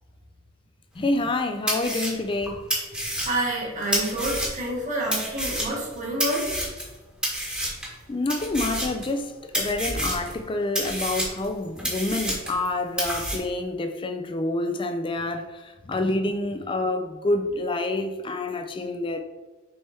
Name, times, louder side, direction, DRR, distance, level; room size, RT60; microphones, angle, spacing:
voice 1, 1.0-2.7 8.1-19.2, left 2 dB, 25° left, 0.4 m, -27 dB
sound 1, 1.2-1.3 1.7-4.7 5.1-6.9 7.2-7.9 8.3-9.3 9.5-10.4 10.7-12.7 13.0-13.4, equal, 5° right, 1.2 m, -29 dB
voice 2, 3.2-6.5, right 1 dB, 35° right, 1.6 m, -28 dB
6.3 x 3.4 x 4.4 m
head